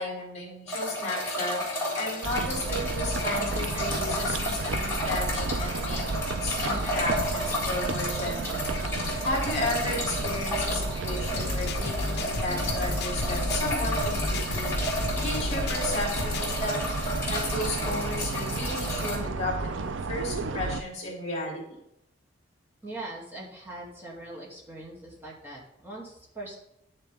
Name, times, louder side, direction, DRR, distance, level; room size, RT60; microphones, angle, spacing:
voice 1, 0.0-6.0 6.4-14.7 15.2-21.8, left 2 dB, 35° left, -1 dB, 2.8 m, -34 dB
sound 1, 0.7-19.2, left 1 dB, 15° left, 3.7 m, -32 dB
sound 2, 2.2-20.8, right 3 dB, 75° right, 0.5 m, -32 dB
sound 3, 11.3-16.6, left 3 dB, 60° left, 0.5 m, -34 dB
voice 2, 22.8-26.6, right 2 dB, 10° right, -4 dB, 2.5 m, -41 dB
10.5 x 6.9 x 3.5 m, 0.79 s
head